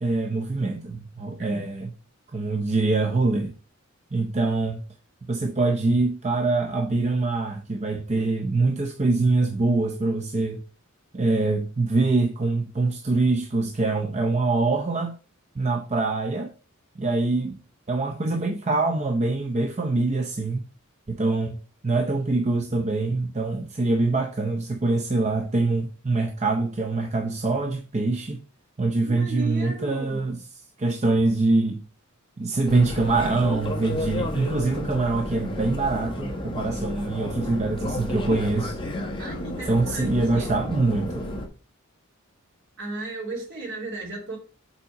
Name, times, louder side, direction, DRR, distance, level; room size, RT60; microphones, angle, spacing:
voice 1, 0.0-1.9 2.3-3.5 4.1-4.8 5.2-10.6 11.1-15.1 15.6-16.5 17.0-17.6 17.9-20.6 21.1-21.6 21.8-28.4 28.8-30.4 30.8-31.8 32.4-38.8 39.7-41.3, right 3 dB, 30° right, 0.6 m, -24 dB
voice 2, 29.0-30.3 39.2-40.5 42.8-44.4, right 3 dB, 60° right, 3.0 m, -35 dB
sound 1, 32.7-41.5, left 1 dB, 25° left, 1.1 m, -32 dB
7.0 x 4.3 x 4.8 m
head